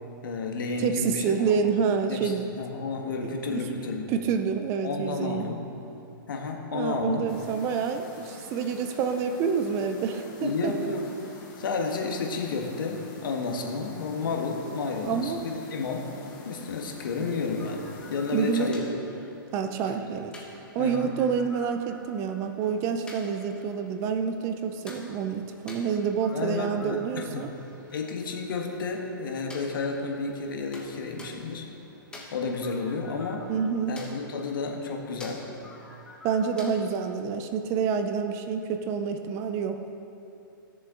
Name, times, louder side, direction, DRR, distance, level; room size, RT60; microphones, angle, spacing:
voice 1, 0.2-1.6 2.1-4.1 4.8-5.6 6.3-7.2 10.4-11.0 11.6-16.1 16.4-17.8 18.1-18.8 20.0-20.1 20.8-21.1 26.3-27.5 27.9-31.7 32.3-33.4 33.9-35.4, left 4 dB, 70° left, 2 dB, 1.5 m, -31 dB
voice 2, 0.8-2.5 3.2-3.7 4.1-5.5 6.7-10.7 15.0-15.4 16.6-16.7 17.2-17.3 18.3-18.7 19.5-20.3 20.7-27.5 33.5-34.0 36.2-39.8, right 6 dB, 25° right, 7 dB, 0.5 m, -28 dB
sound 1, 7.3-18.7, left 3 dB, 35° left, 1.5 m, -47 dB
sound 2, 17.2-36.8, left 2 dB, 10° left, 1.1 m, -49 dB
16.0 x 6.9 x 3.8 m, 2.8 s
hypercardioid pair, 150°, 12 cm